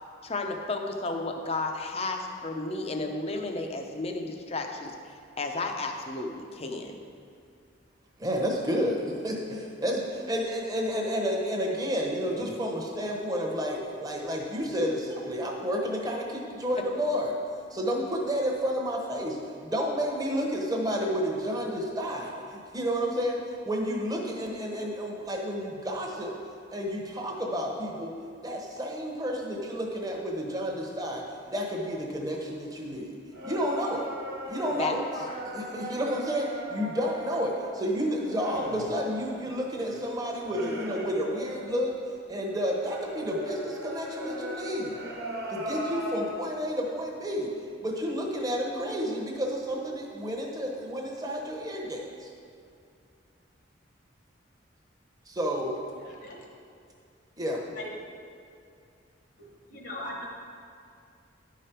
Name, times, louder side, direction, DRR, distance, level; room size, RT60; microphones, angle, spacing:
voice 1, 0.2-7.0 34.8-35.4, left 3 dB, 35° left, 4 dB, 0.6 m, -33 dB
voice 2, 8.2-17.4 17.7-26.3 26.7-28.1 28.4-31.2 31.5-33.2 33.4-34.1 34.5-35.0 35.5-41.9 42.3-45.0 45.5-47.5 47.8-52.3 55.3-55.8 57.4-57.8, equal, 20° right, 0 dB, 0.9 m, -31 dB
sound 1, 33.3-42.1 42.6-46.6, equal, 55° right, 1.3 m, -39 dB
voice 3, 56.0-56.4 57.8-57.9 59.4-60.3, left 1 dB, 60° left, -1 dB, 1.1 m, -40 dB
10.5 x 5.0 x 4.5 m, 2.4 s
head